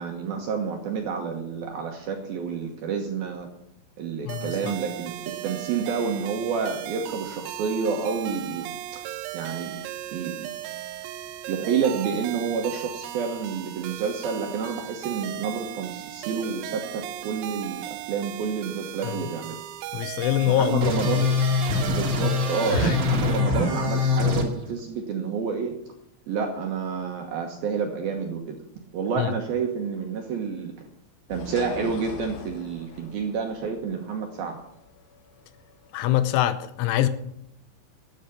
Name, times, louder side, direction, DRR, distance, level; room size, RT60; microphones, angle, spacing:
voice 1, 0.0-3.5 4.0-5.1 5.4-9.0 9.3-9.7 10.1-10.3 11.5-19.6 20.5-21.4 21.8-25.7 26.3-28.6 28.9-30.7 31.3-34.6, right 6 dB, 70° right, 2 dB, 2.4 m, -29 dB
sound 1, 4.3-23.4, right 13 dB, 85° right, 3.5 m, -37 dB
voice 2, 19.9-20.9 21.7-21.9 22.7-23.0 29.2-29.3 35.9-37.1, left 12 dB, 80° left, 12 dB, 3.2 m, -24 dB
sound 2, 20.8-24.5, left 3 dB, 45° right, 1.5 m, -23 dB
sound 3, 31.3-36.5, left 5 dB, 65° left, 2.6 m, -41 dB
13.5 x 7.8 x 8.3 m, 0.77 s
omnidirectional pair, 5.8 m